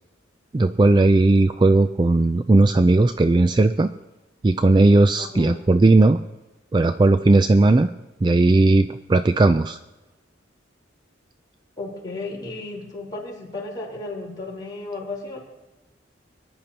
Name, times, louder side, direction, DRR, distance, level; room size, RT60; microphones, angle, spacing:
voice 1, 0.5-3.9 4.4-6.2 6.7-7.9 8.2-9.8, right 2 dB, 25° right, 9 dB, 0.3 m, -17 dB
voice 2, 5.2-5.6 11.8-15.4, left 2 dB, 25° left, -4 dB, 4.2 m, -34 dB
23.5 x 10.5 x 2.9 m, 1.1 s
head